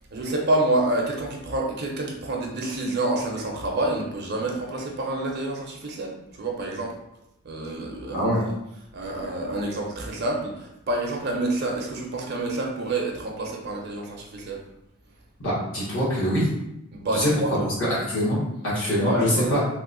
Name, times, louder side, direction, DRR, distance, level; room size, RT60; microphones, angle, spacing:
voice 1, 0.1-7.0 7.4-8.3 8.9-14.6 16.9-17.7 18.9-19.7, right 2 dB, 50° right, 0 dB, 0.5 m, -28 dB
voice 2, 8.1-8.4 15.4-16.5 17.1-19.6, equal, 55° left, -8 dB, 1.1 m, -24 dB
3.0 x 2.1 x 3.7 m, 0.87 s
head